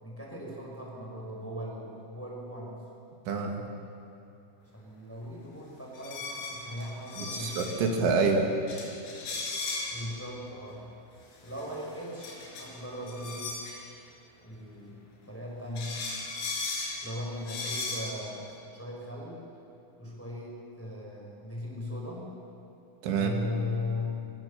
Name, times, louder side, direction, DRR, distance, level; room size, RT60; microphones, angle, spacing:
voice 1, 0.0-2.8 4.7-7.6 9.9-10.9 11.4-13.6 14.4-15.0 15.3-16.0 17.0-19.4 20.0-22.3 23.1-24.2, left 1 dB, 5° left, -3 dB, 5.1 m, -38 dB
voice 2, 3.3-3.6 7.2-8.5 23.0-23.4, right 4 dB, 80° right, 2 dB, 4.2 m, -27 dB
sound 1, 5.9-7.8 8.2-8.3 8.7-10.0 11.3-13.8 15.3-15.4 15.8-17.0 17.4-18.1, left 3 dB, 80° left, 7.0 m, -36 dB
23.5 x 23.5 x 6.9 m, 2.8 s
omnidirectional pair, 5.5 m